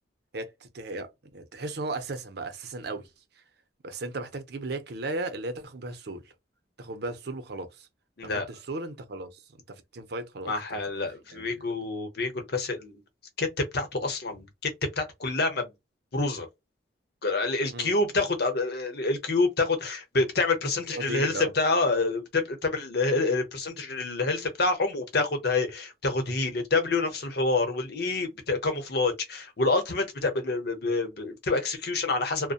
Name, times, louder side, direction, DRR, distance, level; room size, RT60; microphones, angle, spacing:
voice 1, 0.3-3.1 3.8-6.2 6.8-7.9 8.2-9.4 9.7-10.5 11.3-11.6 17.7-17.9 20.9-21.5, right 2 dB, 60° right, 0.6 m, -36 dB
voice 2, 10.5-13.0 13.4-15.7 16.1-16.5 17.2-32.5, left 3 dB, 60° left, 0.8 m, -27 dB
2.7 x 2.1 x 2.4 m
head